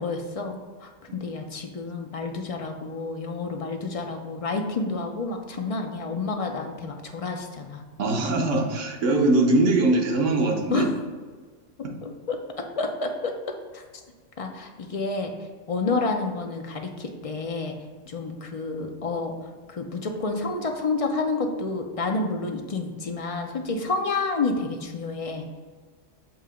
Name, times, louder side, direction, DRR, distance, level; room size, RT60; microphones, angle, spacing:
voice 1, 0.0-7.8 10.7-10.9 12.0-13.3 13.7-13.8 14.4-15.3 15.7-17.8 18.1-19.3 19.7-25.5, left 3 dB, 40° left, 3 dB, 0.5 m, -29 dB
voice 2, 8.0-10.9, right 2 dB, 90° right, 1 dB, 1.3 m, -21 dB
7.2 x 2.8 x 5.0 m, 1.4 s
omnidirectional pair, 1.2 m